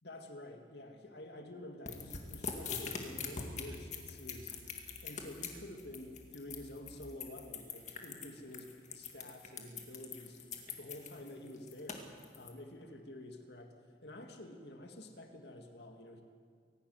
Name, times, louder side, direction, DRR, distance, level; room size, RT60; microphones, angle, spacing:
voice 1, 0.0-4.6 5.0-10.4 10.8-12.1 12.4-13.7 14.0-16.2, left 1 dB, 65° left, 4 dB, 2.1 m, -49 dB
sound 1, 1.9-12.5, left 6 dB, 40° left, 2.1 m, -43 dB
sound 2, 1.9-7.2, left 1 dB, 85° right, 1.4 m, -58 dB
23.5 x 12.0 x 9.6 m, 2.1 s
head